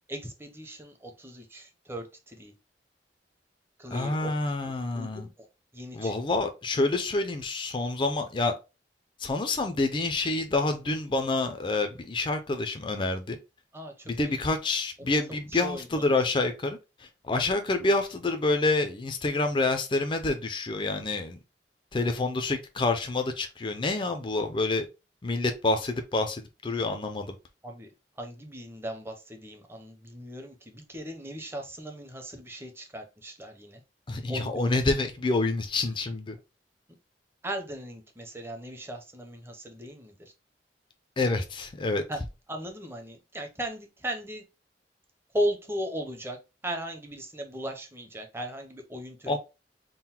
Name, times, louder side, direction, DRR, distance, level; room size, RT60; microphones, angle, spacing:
voice 1, 0.1-2.5 3.8-4.3 4.9-5.3 5.7-6.1 13.7-14.4 15.0-15.1 15.5-16.0 27.6-27.9 28.2-33.8 34.3-34.6 37.4-40.3 42.1-42.2 42.5-44.4 45.3-46.4 46.6-49.4, equal, 15° right, 0.7 m, -37 dB
voice 2, 3.9-5.3 5.9-8.5 9.2-13.4 14.1-21.4 21.9-24.9 25.2-27.4 34.1-36.4 41.2-42.0 49.3-49.4, left 2 dB, 30° left, 0.4 m, -28 dB
3.8 x 2.1 x 4.2 m
head